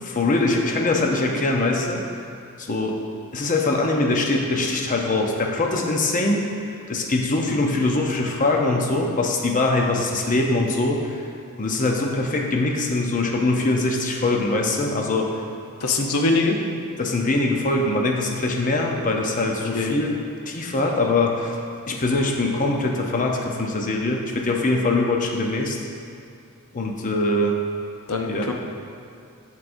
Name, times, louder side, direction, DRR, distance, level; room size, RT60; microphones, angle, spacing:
voice 1, 0.0-2.0 2.6-3.0 3.3-6.5 6.9-11.2 11.6-15.3 17.0-20.2 20.5-21.6 21.9-25.8 26.7-27.6 28.3-28.5, left 2 dB, 35° left, 1 dB, 0.6 m, -22 dB
voice 2, 15.8-16.6 19.7-20.0 28.1-28.5, left 3 dB, 75° left, 2 dB, 0.7 m, -22 dB
7.8 x 7.3 x 2.6 m, 2.5 s
head